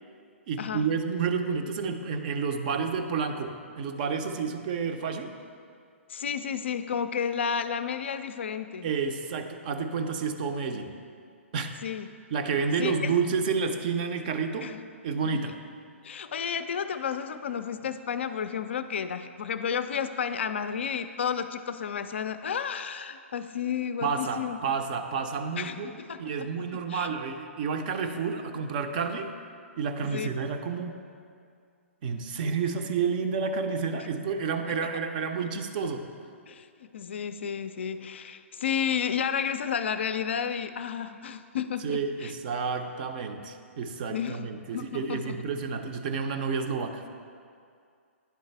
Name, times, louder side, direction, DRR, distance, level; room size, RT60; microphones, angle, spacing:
voice 1, 0.5-5.3 8.8-10.9 11.5-11.8 12.3-14.7 15.0-15.6 24.0-29.3 29.8-31.0 32.0-36.1 41.8-47.0, right 5 dB, 40° right, 6 dB, 0.5 m, -30 dB
voice 2, 6.1-8.9 11.8-12.1 12.8-13.2 14.6-14.8 16.0-24.6 25.6-26.5 26.9-27.1 30.0-30.3 36.5-42.3 44.1-45.4, left 7 dB, 60° left, 11 dB, 0.3 m, -32 dB
10.5 x 3.9 x 3.2 m, 2.3 s
figure-of-eight pair, 120°, 7 cm